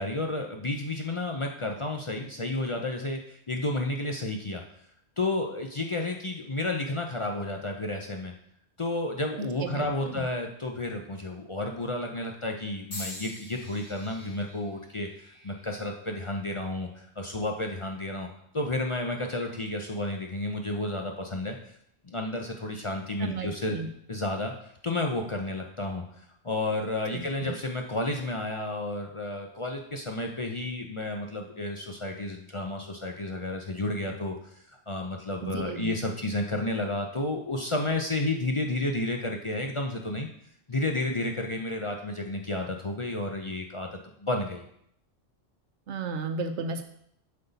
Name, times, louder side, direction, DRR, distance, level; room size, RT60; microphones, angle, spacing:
voice 1, 0.0-4.6 5.2-8.3 8.8-18.3 18.5-21.6 22.0-23.8 24.1-40.3 40.7-43.9 44.2-44.6, left 2 dB, 35° left, 2 dB, 0.5 m, -31 dB
voice 2, 9.4-10.2 23.2-23.9 27.1-27.6 35.4-35.9 45.9-46.8, right 3 dB, 85° right, 7 dB, 1.1 m, -34 dB
sound 1, 12.9-17.0 17.7-18.2 19.1-19.3, left 2 dB, 80° left, 3.2 m, -46 dB
7.8 x 5.5 x 4.0 m, 0.72 s
omnidirectional pair, 1.2 m